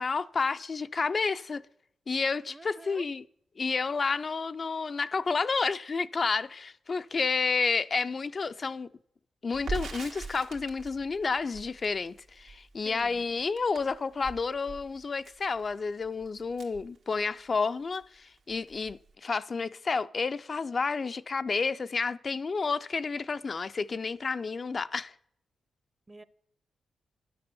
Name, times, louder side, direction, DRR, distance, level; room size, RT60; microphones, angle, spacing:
voice 1, 0.0-1.6 2.1-3.2 3.6-8.9 9.4-25.1, left 4 dB, 40° left, 0.3 m, -30 dB
voice 2, 2.5-3.0 12.8-13.2 26.1-26.2, right 2 dB, 20° right, 0.6 m, -47 dB
Crackle, 9.5-17.6 17.9-18.1 18.4-19.1, right 4 dB, 90° right, 1.8 m, -42 dB
10.5 x 6.9 x 6.8 m
cardioid pair, 85°, 0 cm